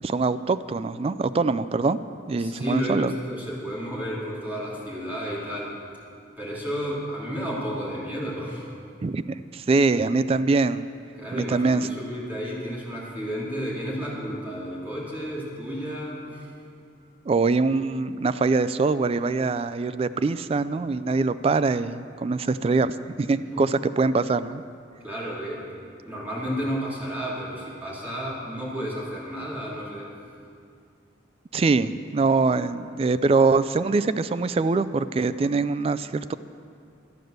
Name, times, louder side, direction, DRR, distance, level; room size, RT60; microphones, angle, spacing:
voice 1, 0.0-2.0 2.3-3.1 9.0-9.2 9.5-10.8 11.3-11.9 17.3-24.6 31.5-36.3, right 3 dB, 30° right, 14 dB, 0.3 m, -23 dB
voice 2, 2.4-5.7 6.4-8.7 11.2-16.5 23.5-23.6 25.0-25.6 26.0-30.1, equal, 10° right, -7 dB, 3.0 m, -32 dB
12.0 x 9.3 x 6.6 m, 2.3 s
head